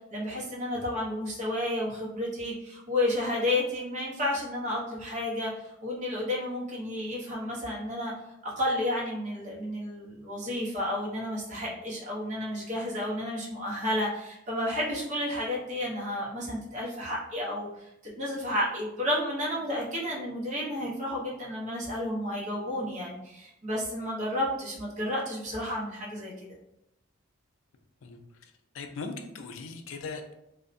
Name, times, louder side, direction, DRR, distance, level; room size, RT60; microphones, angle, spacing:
voice 1, 0.1-5.5 5.8-8.1 8.4-17.7 18.2-26.3, left 1 dB, 35° right, -4 dB, 0.7 m, -31 dB
voice 2, 28.7-30.3, left 4 dB, 75° left, 5 dB, 0.4 m, -39 dB
2.6 x 2.1 x 2.5 m, 0.85 s
head